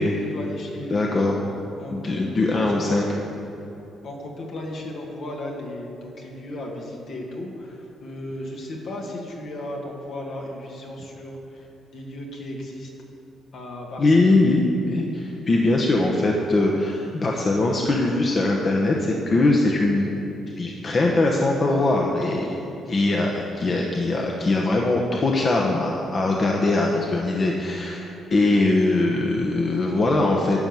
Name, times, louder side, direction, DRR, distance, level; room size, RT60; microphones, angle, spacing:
voice 1, 0.0-1.2 1.8-3.0 4.0-12.9 13.5-14.4, left 1 dB, 65° left, -1 dB, 2.1 m, -35 dB
voice 2, 0.9-1.4 1.9-3.1 14.0-20.2 20.6-22.6 22.9-30.7, left 2 dB, 40° left, -1 dB, 1.1 m, -21 dB
12.0 x 5.5 x 8.0 m, 2.9 s
cardioid pair, 90°, 0 cm